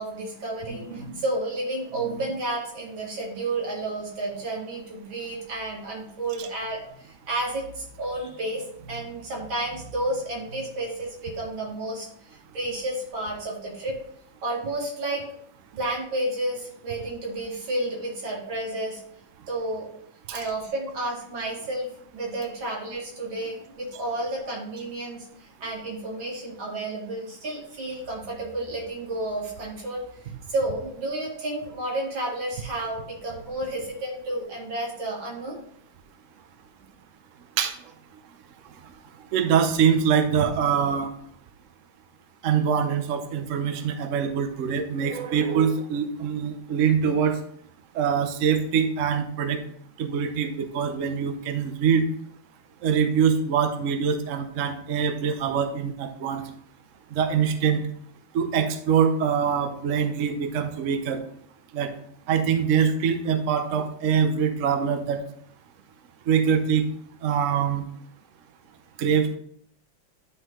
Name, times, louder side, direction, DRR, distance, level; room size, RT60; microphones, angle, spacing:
voice 1, 0.0-14.0 14.4-15.2 15.7-19.0 19.5-19.9 20.3-30.0 30.5-35.6, right 1 dB, 85° right, -3 dB, 2.7 m, -31 dB
voice 2, 39.3-41.1 42.4-47.4 47.9-49.6 50.0-52.1 52.8-56.4 57.1-57.8 58.3-61.2 61.7-61.9 62.3-65.2 66.3-66.9 67.2-67.8 69.0-69.4, right 7 dB, 60° right, 8 dB, 0.8 m, -24 dB
11.0 x 3.8 x 3.0 m, 0.65 s
omnidirectional pair, 2.1 m